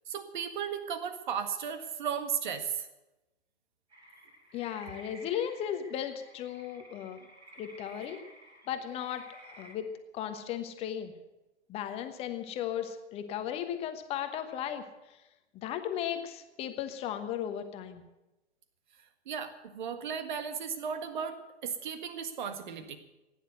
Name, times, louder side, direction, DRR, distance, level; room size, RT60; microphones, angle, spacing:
voice 1, 0.1-2.9 19.2-23.0, right 7 dB, 45° right, 10 dB, 1.7 m, -35 dB
sound 1, 3.9-9.7, right 1 dB, 80° right, 5.8 m, -53 dB
voice 2, 4.5-7.2 7.6-8.2 8.7-9.9 10.1-11.1 11.7-14.8 15.1-15.2 15.5-18.0, left 10 dB, 15° left, 8 dB, 1.2 m, -36 dB
16.0 x 10.0 x 8.0 m, 1.0 s
figure-of-eight pair, 120°, 34 cm